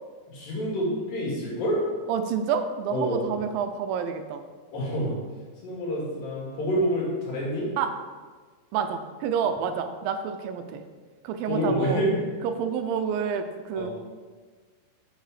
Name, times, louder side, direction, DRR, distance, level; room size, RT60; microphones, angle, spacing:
voice 1, 0.3-1.8 2.9-3.3 4.7-5.2 5.6-7.7 11.5-12.2 13.8-13.9, equal, 75° left, -5 dB, 3.8 m, -27 dB
voice 2, 2.1-4.4 7.8-7.9 8.7-10.8 11.2-12.0 12.4-13.9, right 7 dB, 85° right, 8 dB, 2.3 m, -28 dB
6.9 x 6.5 x 4.9 m, 1.5 s
omnidirectional pair, 4.1 m